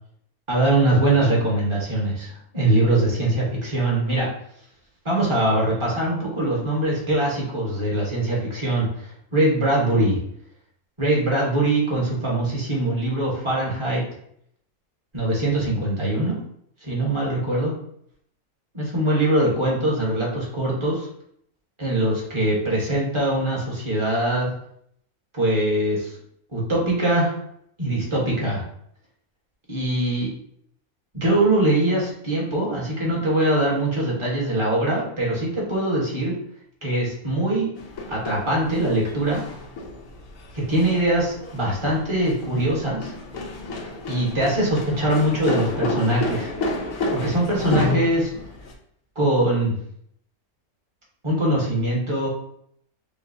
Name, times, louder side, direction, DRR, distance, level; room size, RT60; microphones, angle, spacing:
voice 1, 0.5-4.3 5.0-10.2 11.0-14.0 15.1-16.4 16.8-17.7 18.7-21.1 21.8-24.5 25.3-26.1 26.5-27.3 27.8-28.6 29.7-30.3 31.1-36.3 36.8-37.7 38.1-39.4 40.7-43.1 44.1-46.5 47.1-48.3 49.1-49.7 51.2-52.3, right 1 dB, 20° right, -4 dB, 1.2 m, -22 dB
sound 1, 37.8-48.7, left 2 dB, 70° left, 1.1 m, -30 dB
6.7 x 2.2 x 2.7 m, 0.68 s
omnidirectional pair, 1.5 m